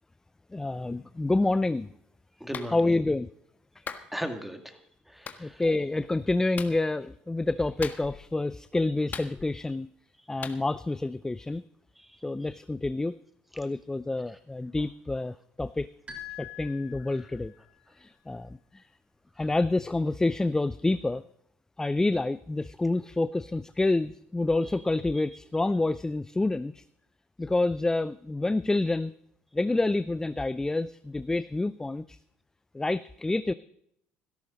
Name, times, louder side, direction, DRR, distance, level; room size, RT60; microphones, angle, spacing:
voice 1, 0.5-1.9 2.7-3.3 5.4-9.9 10.3-11.6 12.2-13.2 13.5-15.9 16.4-17.5 18.0-18.8 19.4-21.2 21.8-26.8 27.4-29.1 29.5-32.2 32.7-33.5, left 2 dB, 10° left, 15 dB, 0.4 m, -28 dB
voice 2, 2.4-3.0 4.1-4.8 5.1-5.6 12.0-12.2, equal, 5° right, 6 dB, 2.3 m, -37 dB
Clapping, 2.5-2.7 3.9-4.1 5.3-5.4 6.6-6.8 7.8-8.3 9.1-9.7 10.4-10.6, left 6 dB, 40° left, 1.5 m, -38 dB
sound 1, 16.1-17.6, left 8 dB, 30° right, 6.6 m, -44 dB
16.5 x 13.0 x 4.0 m, 0.72 s
hypercardioid pair, 75°, 5 cm